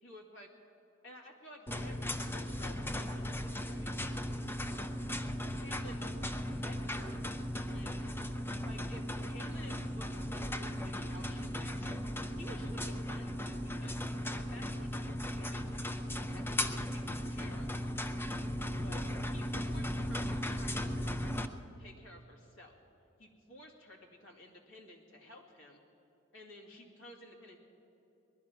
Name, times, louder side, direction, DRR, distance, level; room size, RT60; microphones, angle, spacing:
voice 1, 0.0-0.5 1.0-3.9 5.5-7.3 7.5-8.1 8.6-12.0 12.4-14.0 14.3-17.8 18.7-19.0 19.3-22.8 23.2-25.8 26.3-27.6, left 1 dB, 85° left, 0 dB, 2.4 m, -54 dB
sound 1, 1.7-21.5, equal, 10° left, 0.6 m, -37 dB
20.0 x 11.5 x 6.0 m, 3.0 s
head